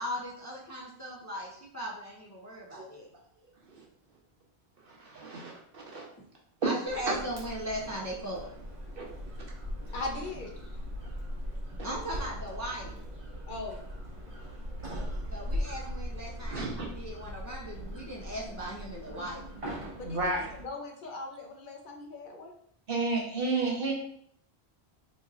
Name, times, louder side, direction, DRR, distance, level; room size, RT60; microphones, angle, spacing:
voice 1, 0.0-3.1 6.6-8.5 11.8-13.0 15.3-19.5, equal, 20° left, -4 dB, 0.5 m, -38 dB
voice 2, 4.9-6.0 6.6-6.7 9.0-9.1 9.9-10.0 16.5-16.9 20.0-20.5 22.9-23.9, right 3 dB, 60° right, -2 dB, 1.1 m, -32 dB
sound 1, 6.8-20.6, equal, 35° right, 1.1 m, -39 dB
voice 3, 9.9-10.5 13.5-13.8 19.9-22.5, left 2 dB, 55° left, 1 dB, 0.8 m, -39 dB
4.0 x 3.2 x 2.4 m, 0.66 s
omnidirectional pair, 1.1 m